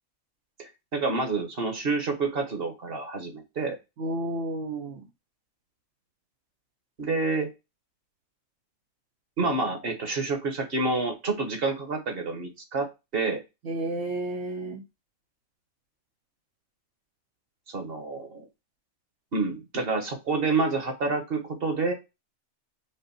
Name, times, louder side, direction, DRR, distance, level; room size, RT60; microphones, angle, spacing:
voice 1, 0.6-3.7 7.0-7.5 9.4-13.4 17.7-18.5 19.3-21.9, right 3 dB, 50° right, 1.3 m, -28 dB
voice 2, 4.0-5.1 13.6-14.8, right 1 dB, 65° right, 1.0 m, -31 dB
5.5 x 2.5 x 2.6 m
omnidirectional pair, 1.3 m